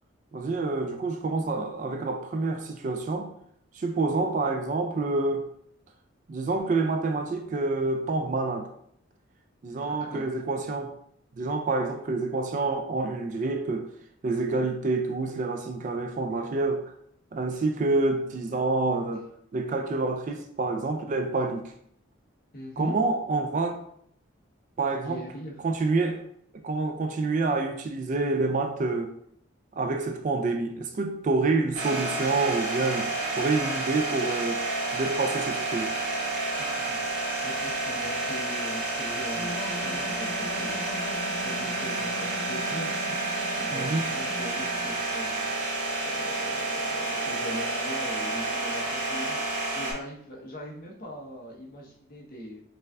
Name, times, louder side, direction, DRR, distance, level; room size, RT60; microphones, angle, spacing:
voice 1, 0.3-3.3 3.7-5.5 6.3-8.7 9.6-10.9 11.4-13.9 14.2-16.8 17.3-19.3 19.5-21.7 22.8-23.8 24.8-25.2 25.6-26.2 26.6-29.1 29.8-33.1 33.4-34.6 34.9-35.9 43.7-44.1, right 3 dB, 40° right, 0.3 m, -27 dB
voice 2, 9.8-10.2 22.5-23.0 25.0-25.6 36.6-52.6, equal, 45° left, 0.9 m, -42 dB
sound 1, 31.7-49.9, right 2 dB, 75° right, 1.3 m, -30 dB
sound 2, 39.3-45.0, equal, 75° left, 0.8 m, -40 dB
5.3 x 2.5 x 2.3 m
head